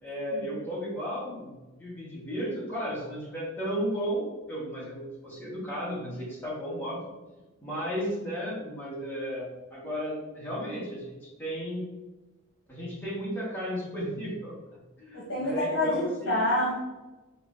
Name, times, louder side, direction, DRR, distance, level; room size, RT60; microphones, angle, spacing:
voice 1, 0.0-7.0 7.6-11.8 12.7-14.6 15.0-16.4, equal, 10° left, -7 dB, 1.3 m, -34 dB
voice 2, 15.1-16.8, left 1 dB, 65° left, -8 dB, 1.2 m, -27 dB
4.1 x 2.7 x 2.5 m, 1.1 s
head